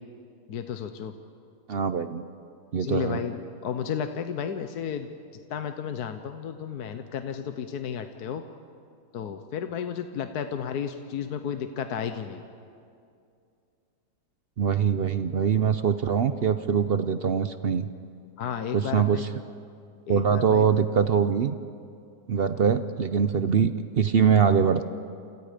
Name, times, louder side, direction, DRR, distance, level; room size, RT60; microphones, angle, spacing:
voice 1, 0.5-1.1 2.8-5.1 5.5-8.4 9.1-12.4 18.4-19.2 20.1-20.7, left 8 dB, 65° left, 7 dB, 1.4 m, -33 dB
voice 2, 1.7-2.2 2.7-3.2 14.6-17.9 18.7-19.3 20.1-21.6 22.3-24.9, right 7 dB, 65° right, 11 dB, 0.6 m, -23 dB
28.5 x 28.5 x 5.1 m, 2.4 s
omnidirectional pair, 1.9 m